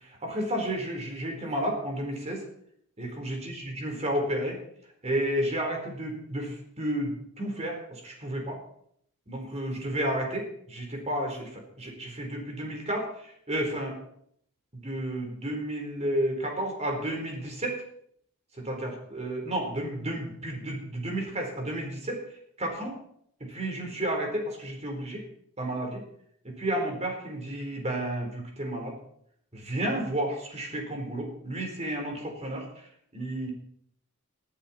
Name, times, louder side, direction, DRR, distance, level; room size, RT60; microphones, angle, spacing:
voice 1, 0.2-2.4 3.0-4.6 5.0-8.6 9.3-13.9 14.7-17.8 18.6-22.2 22.6-22.9 23.4-25.2 25.6-26.0 26.4-28.9 29.5-32.7 33.1-33.5, right 1 dB, 30° right, 2 dB, 4.1 m, -32 dB
19.0 x 11.5 x 4.4 m, 0.67 s
head